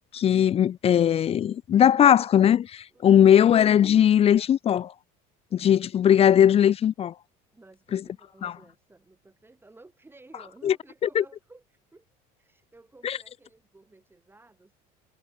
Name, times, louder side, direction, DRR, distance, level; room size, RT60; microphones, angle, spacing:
voice 1, 0.1-4.9 5.5-7.1 7.9-8.0 8.4-8.5 10.6-10.7 11.2-11.3 13.0-13.2, left 9 dB, 30° left, 0.5 m, -19 dB
voice 2, 2.9-3.4 7.5-12.1 12.4-14.8, right 2 dB, 10° right, 7.8 m, -54 dB
supercardioid pair, 120°, 20 cm